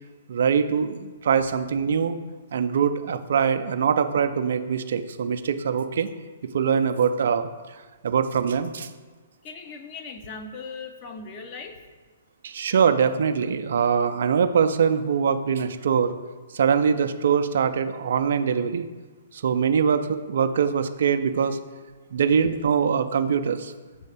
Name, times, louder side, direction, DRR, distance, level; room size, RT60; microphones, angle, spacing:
voice 1, 0.3-2.2 2.5-6.1 6.5-7.5 8.0-8.9 12.4-16.1 16.5-18.9 19.3-21.6 22.1-23.7, right 7 dB, 60° right, 10 dB, 0.4 m, -23 dB
voice 2, 9.4-11.8, left 4 dB, 35° left, 4 dB, 0.8 m, -38 dB
6.2 x 3.2 x 5.7 m, 1.3 s
figure-of-eight pair, 120°, 0 cm